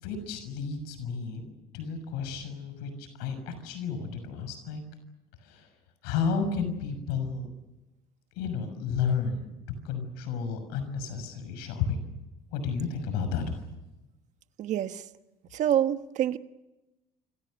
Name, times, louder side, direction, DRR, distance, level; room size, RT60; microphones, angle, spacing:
voice 1, 0.0-4.8 5.4-5.7 6.0-7.5 8.4-9.5 9.8-12.0 12.5-13.5, left 6 dB, 85° left, 9 dB, 6.3 m, -32 dB
voice 2, 14.6-15.0 15.5-16.4, right 11 dB, 45° right, 10 dB, 1.4 m, -26 dB
28.5 x 26.5 x 6.5 m, 1.0 s
cardioid pair, 150°, 16 cm